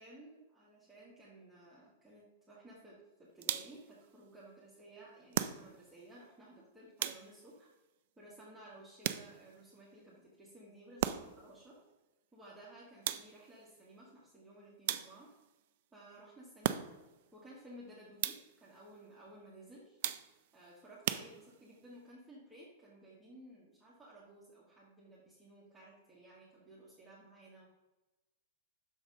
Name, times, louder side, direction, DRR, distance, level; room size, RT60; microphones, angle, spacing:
voice 1, 0.0-7.7 8.2-11.8 12.3-15.3 15.9-16.8 17.3-20.0 20.5-27.7, right 1 dB, 5° right, -8 dB, 1.6 m, -56 dB
sound 1, 3.4-3.9 5.3-6.0 7.0-7.6 9.0-9.6 11.0-11.5 13.0-13.6 14.9-15.4 16.6-17.2 18.2-18.7 20.0-20.5 21.0-21.8, right 12 dB, 55° right, 0.4 m, -38 dB
6.3 x 3.9 x 5.2 m, 1.1 s
hypercardioid pair, 105°, 0 cm